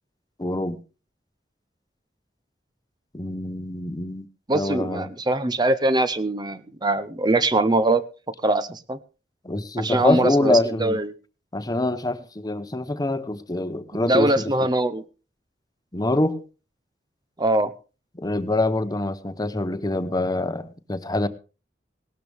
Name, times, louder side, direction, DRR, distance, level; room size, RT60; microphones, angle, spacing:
voice 1, 0.4-0.8 3.1-4.3 4.5-5.1 9.4-11.0 11.5-14.7 15.9-16.4 18.2-21.3, left 2 dB, 20° left, 1.0 m, -25 dB
voice 2, 4.5-8.0 8.4-9.0 9.8-11.1 13.9-15.0 17.4-17.7, right 2 dB, 25° right, 0.7 m, -22 dB
18.0 x 12.5 x 3.5 m
head